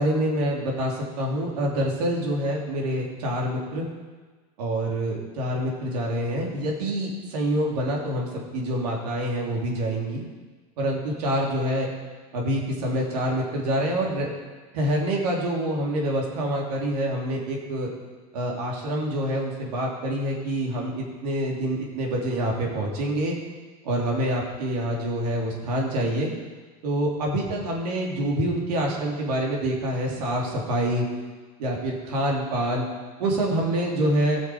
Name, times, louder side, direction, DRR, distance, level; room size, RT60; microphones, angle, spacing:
voice 1, 0.0-3.9 4.6-10.3 10.8-11.9 12.3-14.3 14.7-17.9 18.3-23.3 23.8-26.3 26.8-31.0 31.6-32.8 33.2-34.4, right 1 dB, 85° right, -1 dB, 2.8 m, -26 dB
14.5 x 6.4 x 5.0 m, 1.4 s
supercardioid pair, 140°, 20 cm